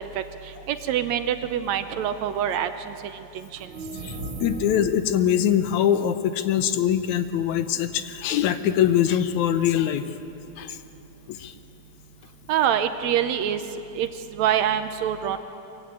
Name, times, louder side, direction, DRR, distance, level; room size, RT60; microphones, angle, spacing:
voice 1, 0.0-3.7 12.5-13.6 14.0-15.4, right 9 dB, 75° right, 10 dB, 1.9 m, -26 dB
sound 1, 3.6-5.1, right 2 dB, 50° right, 2.5 m, -35 dB
voice 2, 4.0-10.0 10.6-10.8 11.3-11.5, left 10 dB, 80° left, 10 dB, 2.1 m, -23 dB
23.5 x 15.5 x 8.7 m, 2.9 s
omnidirectional pair, 3.5 m